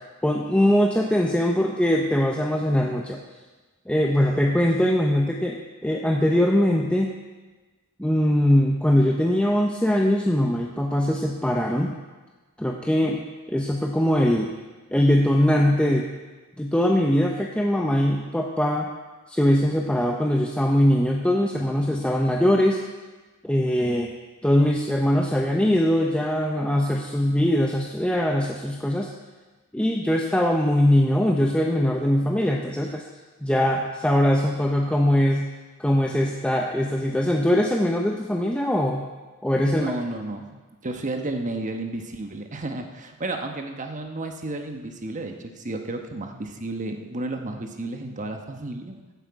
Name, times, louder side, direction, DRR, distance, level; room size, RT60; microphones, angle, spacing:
voice 1, 0.2-3.2 3.9-7.1 8.0-12.0 12.6-13.2 13.5-14.5 14.9-16.1 16.6-18.9 19.3-22.8 23.4-24.1 24.4-29.1 29.7-33.0 33.4-35.5 35.8-39.0 39.4-39.9, left 1 dB, 5° left, 0 dB, 0.7 m, -21 dB
voice 2, 39.6-40.5 40.8-49.0, right 2 dB, 35° right, 4 dB, 1.1 m, -32 dB
15.5 x 7.9 x 4.7 m, 1.3 s
head